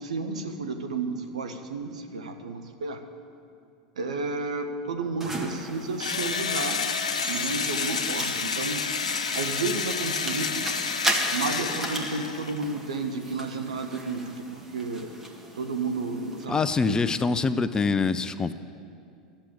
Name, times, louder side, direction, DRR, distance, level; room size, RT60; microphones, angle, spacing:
voice 1, 0.0-3.0 4.0-6.9 7.2-8.9 9.3-10.8 11.3-15.1 15.6-17.0, right 3 dB, 80° right, 7 dB, 1.0 m, -32 dB
sound 1, 5.2-16.4, right 1 dB, 10° right, 1.8 m, -36 dB
Engine / Drill, 6.0-12.6, left 5 dB, 80° left, 0.7 m, -29 dB
voice 2, 16.5-18.5, left 4 dB, 20° left, 13 dB, 0.5 m, -25 dB
11.5 x 7.5 x 8.6 m, 2.4 s
hypercardioid pair, 85°, 4 cm